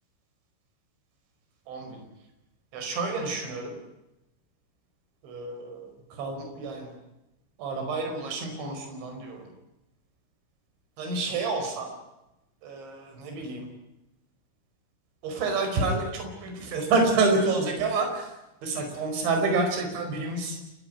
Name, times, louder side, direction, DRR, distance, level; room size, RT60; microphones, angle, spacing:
voice 1, 1.7-2.0 2.7-3.8 5.2-6.9 7.6-9.5 11.0-11.9 12.6-13.7 15.2-18.3 18.6-20.6, right 3 dB, 70° right, 4 dB, 7.2 m, -28 dB
29.0 x 17.0 x 9.6 m, 0.93 s
omnidirectional pair, 5.6 m